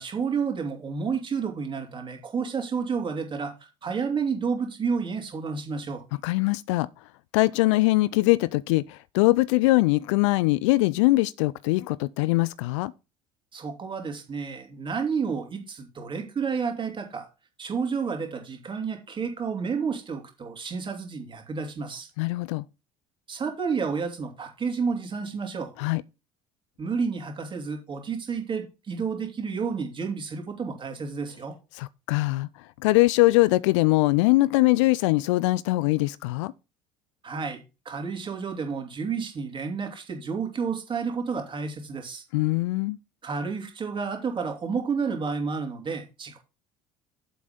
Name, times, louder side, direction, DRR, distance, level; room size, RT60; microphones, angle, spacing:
voice 1, 0.0-6.0 13.5-17.3 17.6-22.1 23.3-25.7 26.8-31.5 37.2-42.2 43.2-46.4, right 5 dB, 30° right, 2.9 m, -30 dB
voice 2, 6.2-6.9 7.3-12.9 22.2-22.7 25.8-26.0 31.7-32.5 32.8-36.5 42.3-43.0, left 20 dB, 65° left, 0.4 m, -22 dB
7.6 x 6.0 x 5.2 m
figure-of-eight pair, 60°, 17 cm